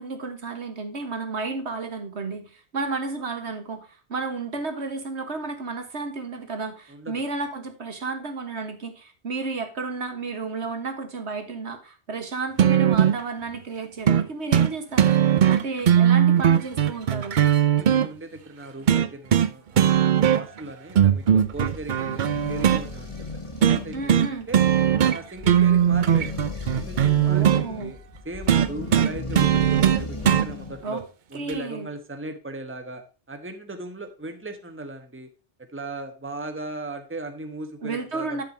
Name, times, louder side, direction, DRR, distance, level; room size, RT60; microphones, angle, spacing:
voice 1, 0.0-15.2 15.5-17.4 23.9-24.5 27.3-27.9 30.8-31.0 31.3-31.9 37.8-38.4, right 3 dB, 75° right, 7 dB, 1.7 m, -32 dB
voice 2, 6.9-7.2 17.6-24.6 25.0-26.4 26.8-28.0 28.2-31.0 31.3-33.0 33.3-35.3 35.7-38.4, right 2 dB, 10° right, 6 dB, 1.2 m, -37 dB
sound 1, 12.6-13.2 14.1-14.2 14.5-14.7 15.0-18.1 18.9-19.5 19.8-20.6 21.0-22.8 23.6-23.8 24.1-24.3 24.5-25.2 25.4-27.6 28.5-30.5 31.5-31.6, right 9 dB, 50° right, 0.7 m, -19 dB
sound 2, 21.1-30.8, left 3 dB, 30° left, 1.4 m, -36 dB
10.5 x 7.7 x 2.8 m, 0.34 s
omnidirectional pair, 1.1 m